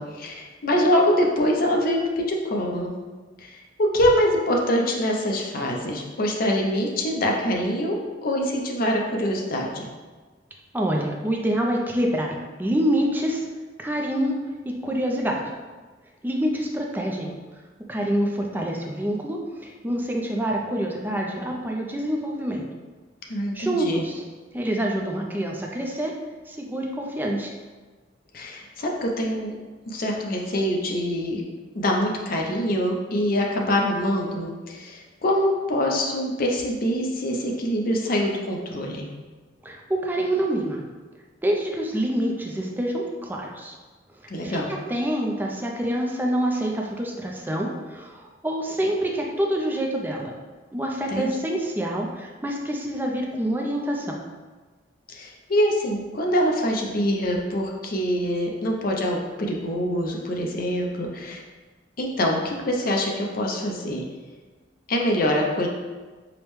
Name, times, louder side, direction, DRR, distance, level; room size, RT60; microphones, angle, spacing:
voice 1, 0.0-2.9 3.4-7.9 8.2-9.9 23.3-24.0 28.3-29.5 29.9-31.4 31.7-39.1 44.3-44.7 51.1-51.3 55.1-61.4 62.0-64.0 64.9-65.7, equal, 50° left, 0 dB, 0.5 m, -24 dB
voice 2, 10.7-13.5 13.8-15.5 16.2-17.3 17.9-22.6 23.5-24.2 24.5-26.1 26.5-27.5 39.6-40.8 41.4-43.7 44.4-50.3 50.7-54.2, right 1 dB, 10° right, 0 dB, 0.4 m, -26 dB
4.9 x 2.1 x 3.1 m, 1.3 s
head